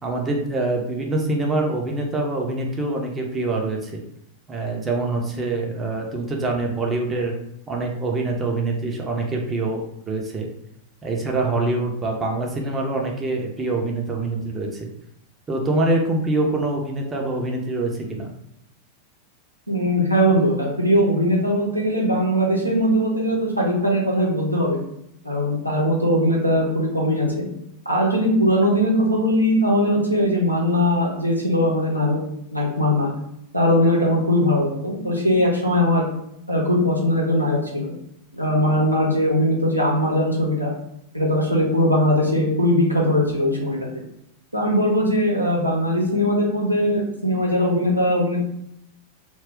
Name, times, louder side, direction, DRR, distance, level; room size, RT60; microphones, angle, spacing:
voice 1, 0.0-4.0 4.5-7.4 7.7-10.5 11.0-14.9 15.5-18.3, right 2 dB, 20° right, 1 dB, 0.7 m, -25 dB
voice 2, 19.7-24.8 25.2-27.4 27.8-32.2 32.5-33.1 33.5-36.1 36.5-37.9 38.3-40.7 41.1-43.8 44.5-48.4, equal, 90° right, -3 dB, 0.8 m, -20 dB
2.3 x 2.3 x 3.5 m, 0.77 s
figure-of-eight pair, 90°, 0 cm